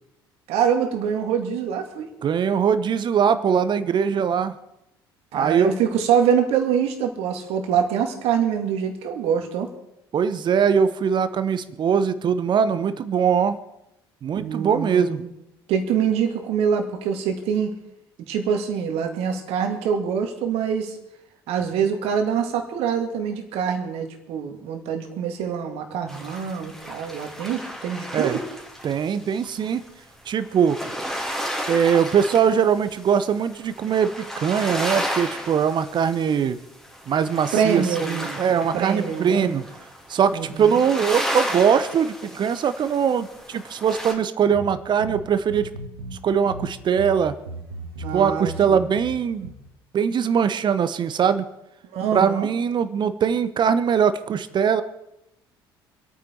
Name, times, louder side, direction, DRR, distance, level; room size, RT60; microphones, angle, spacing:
voice 1, 0.5-2.1 5.3-9.7 14.4-15.3 15.7-17.7 18.3-21.0 21.5-28.4 37.5-38.4 38.7-39.5 40.3-40.7 48.0-48.8 51.9-52.5, right 7 dB, 55° right, 5 dB, 2.3 m, -24 dB
voice 2, 2.2-4.5 5.3-5.7 10.1-13.6 14.2-15.2 28.1-28.4 28.8-29.8 30.3-30.8 31.7-36.6 37.1-39.7 40.1-45.7 46.2-47.3 48.1-49.5 49.9-51.4 52.1-54.8, right 7 dB, 40° right, 13 dB, 1.1 m, -21 dB
sound 1, 26.1-44.1, equal, ahead, 3.1 m, -33 dB
sound 2, 44.5-46.2 46.5-49.5, right 1 dB, 80° right, 2.0 m, -36 dB
26.0 x 9.1 x 4.6 m, 0.85 s
figure-of-eight pair, 55°, 12 cm